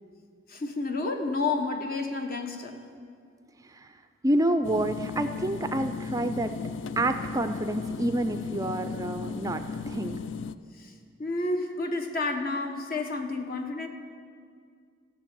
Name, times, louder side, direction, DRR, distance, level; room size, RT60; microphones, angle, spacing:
voice 1, 0.5-2.8 10.8-10.9 11.2-13.9, left 3 dB, 45° left, 5 dB, 1.2 m, -30 dB
voice 2, 4.2-6.6 7.0-10.2, right 1 dB, 15° right, 8 dB, 0.4 m, -28 dB
sound 1, 4.6-10.5, left 5 dB, 65° left, 0.4 m, -35 dB
14.0 x 6.7 x 8.9 m, 2.2 s
head